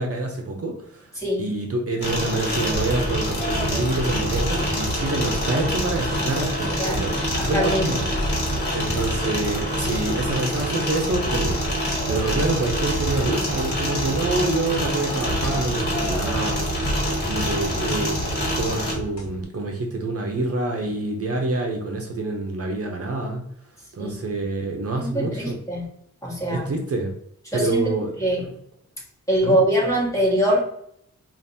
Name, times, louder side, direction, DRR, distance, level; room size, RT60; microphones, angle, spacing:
voice 1, 0.0-1.1 1.4-7.2 7.5-8.1 8.7-16.7 17.3-18.2 18.5-23.4 23.9-25.6 26.5-27.1 27.5-28.1 29.4-29.6, right 2 dB, 50° right, 2 dB, 0.7 m, -27 dB
voice 2, 1.2-1.5 6.8-7.1 7.3-7.9 24.0-24.4 25.0-25.8 26.2-26.7 27.5-27.9 28.2-28.4 29.3-30.6, equal, 10° left, -5 dB, 1.6 m, -23 dB
sound 1, 2.0-18.9, equal, 35° left, 1.6 m, -26 dB
sound 2, 2.7-19.4, right 1 dB, 60° left, 1.2 m, -31 dB
5.0 x 2.5 x 2.7 m, 0.71 s
wide cardioid pair, 110°, 29 cm